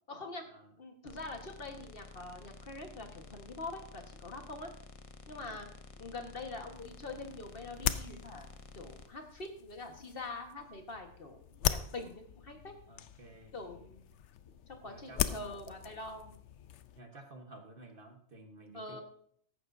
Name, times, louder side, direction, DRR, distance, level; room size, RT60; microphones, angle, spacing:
voice 1, 0.1-0.4 0.8-4.7 5.3-5.7 6.0-8.5 8.7-12.7 13.5-14.0 14.7-16.4 18.7-19.0, left 2 dB, 50° left, 4 dB, 1.7 m, -44 dB
sound 1, 1.1-9.1, left 4 dB, 35° left, 0.8 m, -52 dB
sound 2, 6.7-17.0, left 9 dB, 80° left, 0.9 m, -40 dB
voice 2, 11.7-12.0 12.9-13.5 14.8-15.6 17.0-19.0, right 2 dB, 50° right, 4 dB, 1.6 m, -53 dB
14.5 x 11.5 x 2.7 m, 0.63 s
omnidirectional pair, 1.2 m